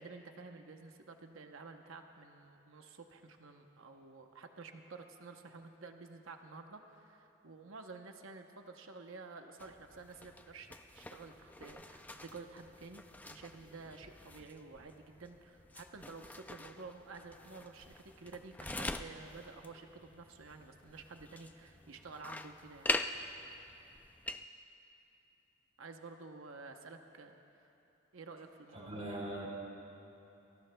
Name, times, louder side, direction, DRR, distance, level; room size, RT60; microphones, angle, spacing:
voice 1, 0.0-22.9 25.8-27.7 28.1-29.0, right 4 dB, 70° right, 5 dB, 0.8 m, -51 dB
sound 1, 9.6-24.4, left 2 dB, 10° left, 0.3 m, -44 dB
voice 2, 28.7-29.5, right 1 dB, 30° right, -2 dB, 3.2 m, -41 dB
28.5 x 20.5 x 2.2 m, 2.9 s
head